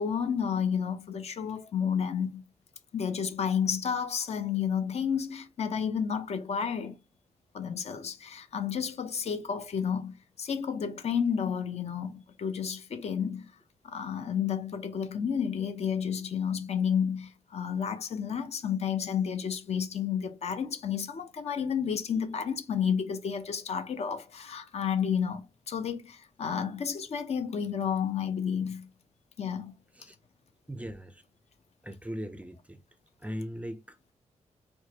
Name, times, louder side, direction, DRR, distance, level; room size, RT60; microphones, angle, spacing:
voice 1, 0.0-2.4 2.9-7.0 7.5-13.5 13.8-28.9 29.4-29.7, left 7 dB, 60° left, 0.6 m, -31 dB
voice 2, 30.7-31.2 31.8-32.8 33.2-34.1, equal, 10° right, 0.4 m, -39 dB
4.5 x 2.2 x 2.8 m
wide cardioid pair, 125°, 13 cm